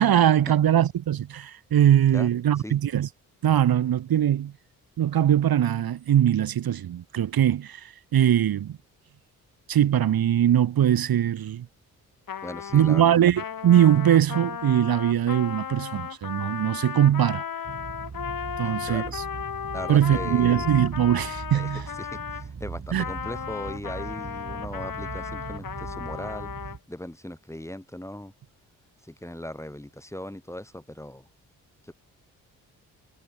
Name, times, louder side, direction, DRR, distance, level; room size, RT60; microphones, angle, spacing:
voice 1, 0.0-3.1 3.4-4.5 5.0-8.8 9.7-11.7 12.7-17.4 18.6-19.2 19.9-21.9 22.9-23.0, right 10 dB, 60° right, 1.3 m, -21 dB
voice 2, 2.1-2.8 12.4-13.2 18.6-19.1 19.7-20.7 21.5-26.5 26.9-28.3 29.0-31.3 31.8-31.9, left 1 dB, 5° left, 3.2 m, -39 dB
Trumpet, 12.3-22.5 23.0-26.8, left 8 dB, 55° left, 2.2 m, -35 dB
sound 1, 17.6-26.8, right 5 dB, 40° right, 4.5 m, -39 dB
hypercardioid pair, 40°, 41 cm